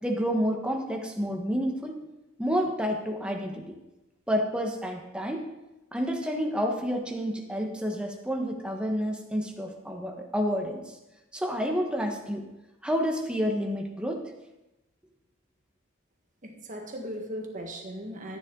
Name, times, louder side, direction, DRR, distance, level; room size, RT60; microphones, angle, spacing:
voice 1, 0.0-2.0 2.4-3.8 4.3-5.5 5.9-11.0 11.3-12.4 12.8-14.2, equal, 5° right, 2 dB, 1.3 m, -29 dB
voice 2, 16.4-18.4, equal, 35° right, 2 dB, 1.6 m, -38 dB
14.0 x 10.0 x 3.8 m, 0.97 s
head